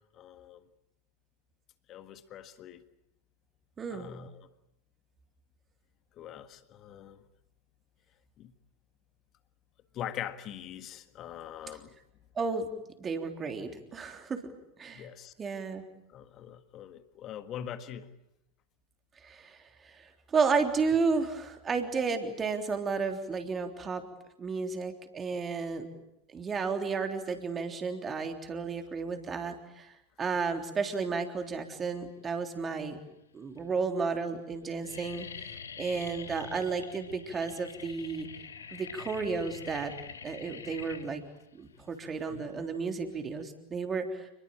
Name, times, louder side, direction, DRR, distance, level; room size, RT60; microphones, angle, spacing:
voice 1, 0.1-0.6 1.9-2.8 3.9-4.5 6.1-7.2 8.4-8.5 9.9-11.9 14.9-15.3 16.1-18.1 42.0-42.5, left 10 dB, 35° left, 11 dB, 1.7 m, -43 dB
voice 2, 3.8-4.1 12.4-12.7 13.0-14.4 14.8-15.1 15.4-15.8 19.2-24.0 24.4-25.9 26.3-33.0 33.3-38.3 38.7-39.9 40.2-41.2 41.5-44.3, right 4 dB, 20° right, 5 dB, 3.5 m, -32 dB
sound 1, 32.3-32.8 33.5-33.6 33.9-34.2 34.5-43.4, left 6 dB, 70° left, 1.9 m, -46 dB
29.0 x 21.5 x 8.8 m, 0.85 s
figure-of-eight pair, 90°, 0 cm